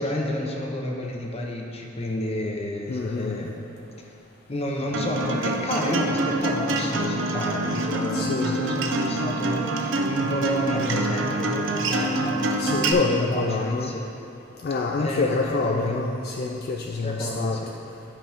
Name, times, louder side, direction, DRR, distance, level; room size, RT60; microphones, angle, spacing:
voice 1, 0.0-3.5 4.5-12.4 12.9-14.1 15.0-16.0 17.0-17.7, left 1 dB, 30° left, 1 dB, 0.8 m, -30 dB
voice 2, 2.9-3.4 8.1-8.6 10.7-11.1 12.6-13.9 14.6-17.6, left 3 dB, 50° left, 1 dB, 0.4 m, -27 dB
Acoustic guitar, 4.9-12.9, right 2 dB, 65° right, 0.7 m, -26 dB
11.5 x 5.1 x 3.5 m, 2.7 s
head